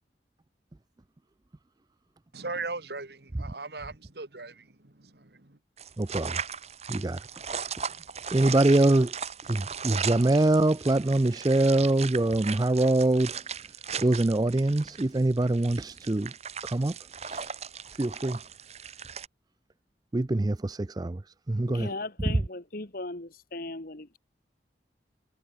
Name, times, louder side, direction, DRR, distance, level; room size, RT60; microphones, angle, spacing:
voice 1, 2.3-5.6, right 3 dB, 65° right, 2.0 m, -39 dB
sound 1, 5.8-19.3, right 6 dB, 35° right, 2.1 m, -37 dB
voice 2, 6.0-6.4 6.9-7.2 8.3-9.1 9.5-13.4 14.0-16.3 16.6-16.9 17.2-17.5 18.0-18.4 20.1-21.2 21.5-21.9, right 2 dB, 20° right, 0.4 m, -24 dB
voice 3, 21.7-24.2, left 2 dB, 55° left, 1.8 m, -37 dB
head